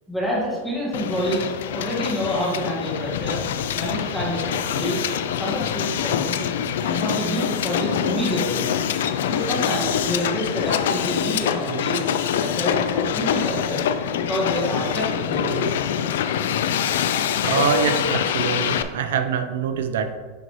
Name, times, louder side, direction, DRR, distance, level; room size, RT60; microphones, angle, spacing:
voice 1, 0.1-3.4 3.7-5.0 5.4-6.4 6.8-8.7 9.2-12.0 12.4-13.8 14.1-15.8, equal, ahead, -7 dB, 1.8 m, -28 dB
Hiss, 0.9-18.8, left 9 dB, 85° left, 0.4 m, -25 dB
voice 2, 17.4-20.2, right 6 dB, 85° right, 8 dB, 0.7 m, -24 dB
10.0 x 4.0 x 3.2 m, 1.4 s
supercardioid pair, 170°, 0 cm